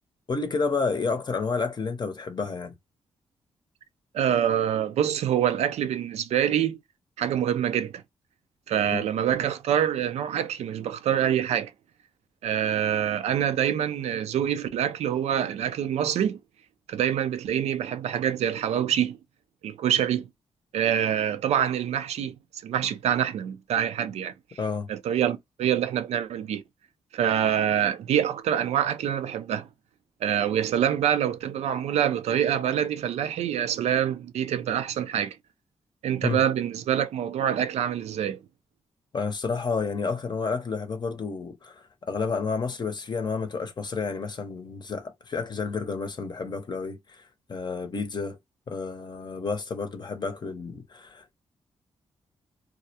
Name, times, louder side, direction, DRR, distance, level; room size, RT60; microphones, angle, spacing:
voice 1, 0.3-2.7 8.9-9.0 24.6-24.9 36.2-36.4 39.1-48.4 48.7-51.4, left 4 dB, 40° left, 0.6 m, -30 dB
voice 2, 4.1-6.8 7.2-8.0 8.7-11.7 12.4-16.4 16.9-19.2 19.6-20.3 20.7-22.3 22.6-24.3 24.9-26.6 27.1-29.7 30.2-35.4 36.0-38.4, right 9 dB, 85° right, 0.4 m, -25 dB
2.4 x 2.0 x 2.7 m
cardioid pair, 75°, 11 cm